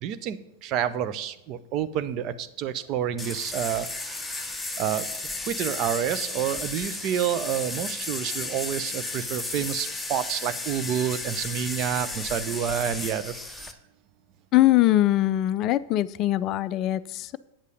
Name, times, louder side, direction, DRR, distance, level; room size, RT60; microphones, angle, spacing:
voice 1, 0.0-5.1 5.4-13.7, right 9 dB, 40° right, 12 dB, 0.6 m, -29 dB
sound 1, 3.2-13.7, left 2 dB, 5° left, 0.9 m, -34 dB
voice 2, 14.5-17.4, left 15 dB, 35° left, 16 dB, 0.3 m, -22 dB
8.7 x 8.1 x 5.2 m, 0.91 s
figure-of-eight pair, 90°, 0 cm